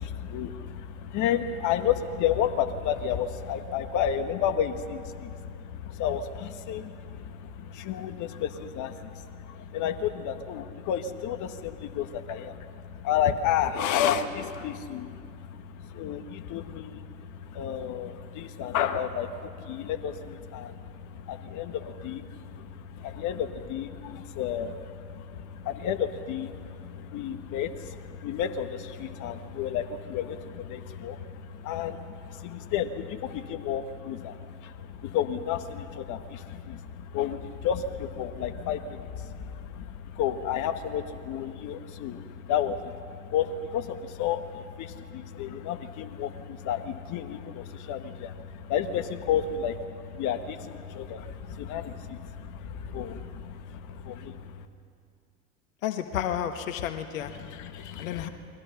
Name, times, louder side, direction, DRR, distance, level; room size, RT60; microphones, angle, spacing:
voice 1, 0.0-54.6 57.3-58.3, left 9 dB, 45° left, 8 dB, 1.6 m, -32 dB
voice 2, 55.8-57.3 58.0-58.3, left 10 dB, 70° left, 7 dB, 1.5 m, -31 dB
29.5 x 22.5 x 5.9 m, 2.3 s
hypercardioid pair, 85°, 41 cm